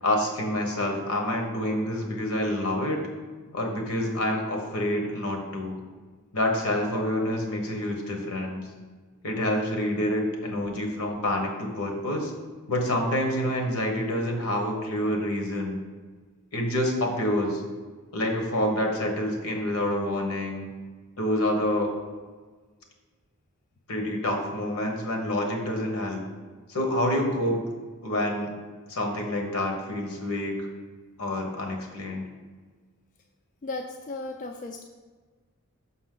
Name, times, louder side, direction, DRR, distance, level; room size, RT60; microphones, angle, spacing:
voice 1, 0.0-3.0 3.5-5.8 6.3-8.6 9.2-12.3 12.7-15.8 16.5-17.6 18.1-20.7 21.2-21.9 23.9-26.3 26.7-27.6 28.0-28.5 28.9-30.7 31.2-32.2, left 1 dB, 75° left, 2 dB, 1.2 m, -27 dB
voice 2, 33.6-34.8, left 2 dB, 35° left, 4 dB, 0.3 m, -35 dB
6.1 x 5.6 x 3.8 m, 1.4 s
head